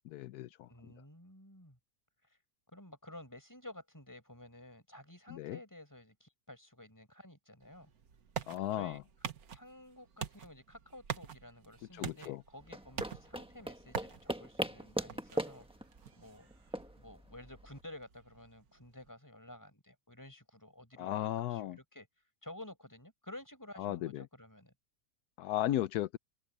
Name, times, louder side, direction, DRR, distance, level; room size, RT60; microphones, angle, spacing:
voice 1, 0.1-0.7 5.3-5.6 8.5-9.0 11.9-12.4 21.0-21.8 23.8-24.3 25.4-26.2, left 13 dB, 85° left, 1.1 m, -35 dB
voice 2, 0.7-1.8 2.3-2.4 2.7-7.9 8.7-9.0 9.5-15.7 16.2-16.5 17.0-22.1 22.4-24.7, left 1 dB, 10° left, 5.3 m, -52 dB
sound 1, 7.6-19.1, right 7 dB, 75° right, 1.8 m, -47 dB
sound 2, 12.6-17.8, right 1 dB, 5° right, 1.2 m, -40 dB
open air
omnidirectional pair, 1.6 m